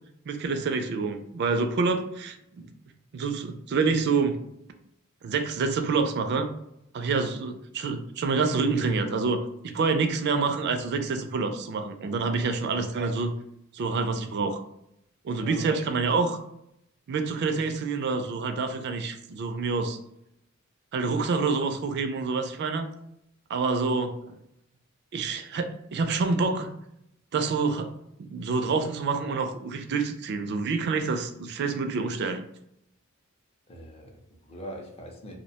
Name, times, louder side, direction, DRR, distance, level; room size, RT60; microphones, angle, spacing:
voice 1, 0.3-2.7 3.1-4.4 5.2-6.5 6.9-9.4 9.6-13.3 13.7-14.6 15.2-16.4 17.1-20.0 20.9-22.9 23.5-24.4 25.1-26.7 27.3-27.9 28.2-32.4, right 4 dB, 55° right, 7 dB, 0.3 m, -27 dB
voice 2, 33.7-35.4, equal, 30° left, 1 dB, 0.5 m, -41 dB
2.5 x 2.1 x 2.8 m, 0.78 s
head